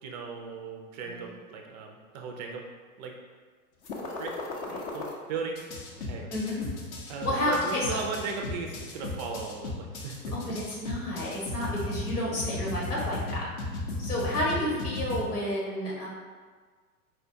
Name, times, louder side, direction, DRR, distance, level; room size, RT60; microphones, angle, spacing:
voice 1, 0.0-2.7 3.0-3.2 4.2-4.4 4.9-6.3 7.1-10.4, right 5 dB, 30° right, 1 dB, 0.4 m, -37 dB
sound 1, 3.8-5.1 5.5-15.2, left 2 dB, 35° left, 0.6 m, -35 dB
voice 2, 6.3-6.6 7.0-8.0 10.3-13.4 14.0-16.1, left 1 dB, 80° left, -5 dB, 1.5 m, -31 dB
4.4 x 2.2 x 2.7 m, 1.5 s
hypercardioid pair, 105°, 45 cm